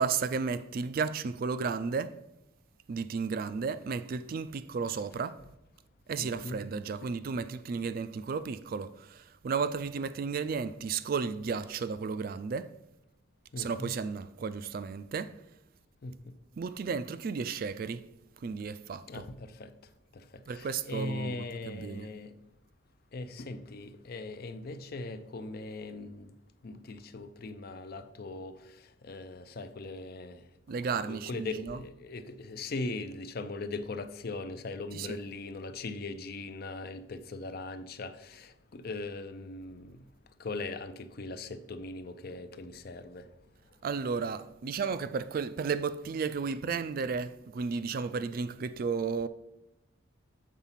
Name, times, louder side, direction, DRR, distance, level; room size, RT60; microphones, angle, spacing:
voice 1, 0.0-2.2 2.9-5.4 6.1-12.7 13.6-15.4 16.6-18.1 18.4-19.2 20.5-22.1 30.7-31.8 34.9-35.2 43.8-49.3, right 5 dB, 45° right, 0.3 m, -33 dB
voice 2, 6.2-6.7 7.0-7.1 13.5-13.9 16.0-16.2 19.1-19.7 20.1-22.3 23.1-26.3 26.6-28.8 29.0-30.4 31.1-40.0 40.4-43.3, left 3 dB, 50° left, 0.5 m, -40 dB
7.4 x 4.0 x 5.7 m
head